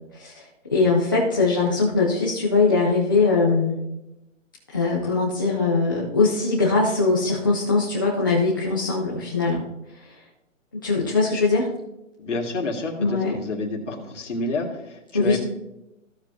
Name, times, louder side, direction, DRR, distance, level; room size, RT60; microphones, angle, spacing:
voice 1, 0.1-0.4 0.7-3.8 4.7-9.6 10.1-10.2 10.8-11.7 13.0-13.4 15.1-15.4, left 3 dB, 15° left, -6 dB, 0.6 m, -21 dB
voice 2, 12.2-15.4, left 2 dB, 65° left, -1 dB, 2.2 m, -29 dB
15.5 x 7.0 x 2.8 m, 0.94 s
hypercardioid pair, 165°, 39 cm